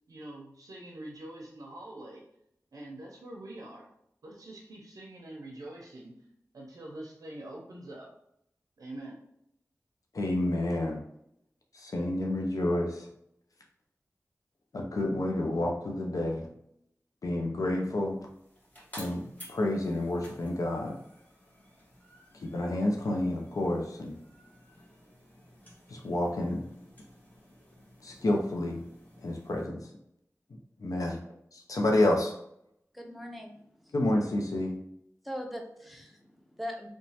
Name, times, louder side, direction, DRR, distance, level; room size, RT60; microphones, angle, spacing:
voice 1, 0.1-2.2 2.7-3.9 4.2-6.1 6.5-8.1 8.8-9.2, right 1 dB, 85° right, -2 dB, 0.5 m, -44 dB
voice 2, 10.1-11.0 11.7-13.1 14.7-16.5 17.2-18.2 19.0-21.0 22.3-24.2 25.9-26.7 28.0-28.8 29.2-29.9 30.8-31.2 31.5-32.3 33.9-34.8, left 1 dB, 75° left, 0 dB, 0.4 m, -29 dB
sound 1, 18.0-29.7, equal, 25° left, 1.1 m, -54 dB
voice 3, 32.9-33.9 35.2-36.9, equal, ahead, 2 dB, 0.6 m, -41 dB
3.0 x 2.1 x 2.7 m, 0.76 s
cardioid pair, 40°, 6 cm